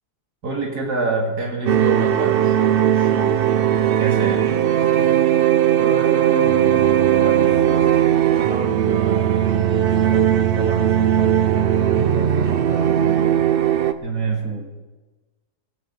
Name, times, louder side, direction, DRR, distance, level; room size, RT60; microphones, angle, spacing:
voice 1, 0.4-4.5 14.0-14.5, right 3 dB, 75° right, 0 dB, 3.0 m, -26 dB
sound 1, 1.7-13.9, right 10 dB, 55° right, 0.6 m, -18 dB
voice 2, 5.8-6.9 7.2-7.9 8.3-13.4 14.2-14.8, right 2 dB, 5° right, -1 dB, 2.3 m, -34 dB
21.5 x 8.4 x 5.5 m, 1.2 s
omnidirectional pair, 1.7 m